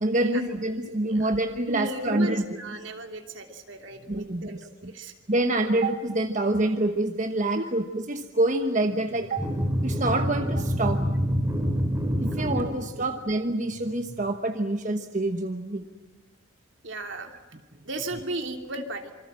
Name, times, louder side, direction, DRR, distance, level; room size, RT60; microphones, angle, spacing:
voice 1, 0.0-2.4 4.1-4.9 5.3-9.4 9.8-11.0 12.2-15.9, right 2 dB, 40° right, 6 dB, 1.2 m, -26 dB
voice 2, 0.9-1.3 1.7-5.1 7.5-7.7 12.3-13.0 16.8-17.3 17.8-19.1, right 2 dB, 65° right, 4 dB, 3.0 m, -36 dB
sound 1, 9.4-12.6, equal, 10° right, 4.4 m, -26 dB
27.0 x 25.0 x 7.5 m, 1.3 s
head